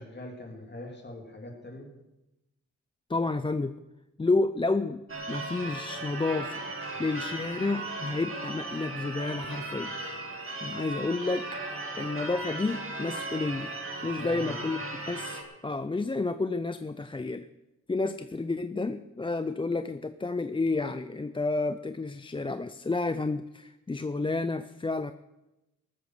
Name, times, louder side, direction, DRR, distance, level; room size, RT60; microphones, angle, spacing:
voice 1, 0.0-1.9 14.2-14.6, left 1 dB, 35° left, 0 dB, 3.2 m, -42 dB
voice 2, 3.1-3.8 4.2-6.6 7.0-10.0 10.6-11.5 12.0-13.7 14.0-14.8 15.0-17.5 17.9-25.1, left 3 dB, 15° left, 10 dB, 0.4 m, -30 dB
Church bell / Car / Alarm, 5.1-15.4, right 2 dB, 45° right, 2.1 m, -37 dB
19.5 x 8.4 x 6.6 m, 0.96 s
wide cardioid pair, 155°, 31 cm